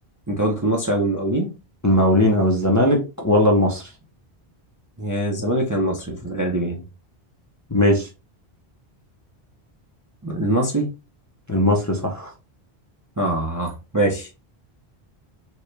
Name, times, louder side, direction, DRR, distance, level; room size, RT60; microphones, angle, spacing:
voice 1, 0.3-1.5 5.0-6.8 10.2-10.9 13.2-14.3, right 1 dB, 25° right, 0.5 m, -23 dB
voice 2, 1.8-3.9 7.7-8.1 11.5-12.3, left 1 dB, 20° left, 0.6 m, -18 dB
4.3 x 2.3 x 3.2 m
omnidirectional pair, 1.1 m